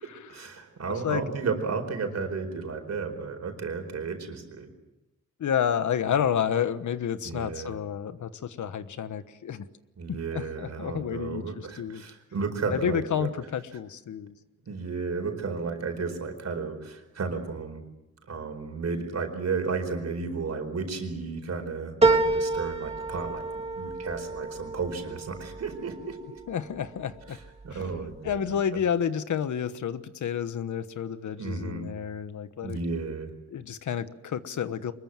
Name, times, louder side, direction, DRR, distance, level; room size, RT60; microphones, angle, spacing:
voice 1, 0.0-4.7 7.2-7.7 10.0-13.3 14.7-17.8 18.3-26.4 27.3-28.4 31.4-31.9 32.6-33.3, right 4 dB, 60° right, 6 dB, 4.6 m, -33 dB
voice 2, 5.4-9.7 10.1-12.0 12.7-14.3 26.5-27.4 27.7-32.8 33.5-34.9, left 8 dB, 80° left, 12 dB, 1.2 m, -30 dB
sound 1, 22.0-26.8 27.3-28.0 28.3-28.4, right 3 dB, 20° right, 2.0 m, -28 dB
24.5 x 21.5 x 7.6 m, 0.98 s
wide cardioid pair, 115°, 29 cm